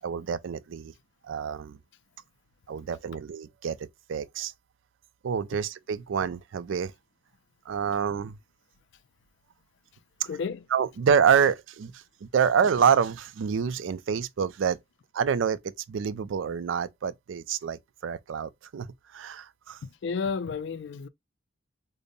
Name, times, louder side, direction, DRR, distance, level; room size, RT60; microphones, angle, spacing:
voice 1, 0.0-0.9 1.3-1.8 2.7-3.8 4.1-4.5 5.2-6.9 7.7-8.4 10.7-11.9 12.2-14.8 15.1-15.6 15.9-18.9 19.1-19.8, right 7 dB, 80° right, 0.4 m, -27 dB
voice 2, 10.2-10.7 19.8-21.1, left 5 dB, 65° left, 0.4 m, -32 dB
5.1 x 2.0 x 2.5 m
head